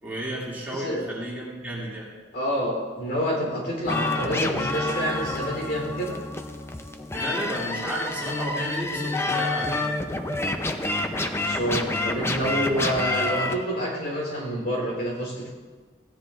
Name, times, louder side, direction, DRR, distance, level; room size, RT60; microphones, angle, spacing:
voice 1, 0.0-2.1 7.1-9.9, right 1 dB, 10° right, -7 dB, 2.5 m, -32 dB
voice 2, 0.7-1.0 2.3-6.2 11.2-15.5, equal, 60° left, -3 dB, 3.5 m, -28 dB
sound 1, 3.8-13.5, left 2 dB, 15° left, 0.5 m, -28 dB
16.5 x 10.0 x 2.5 m, 1.4 s
head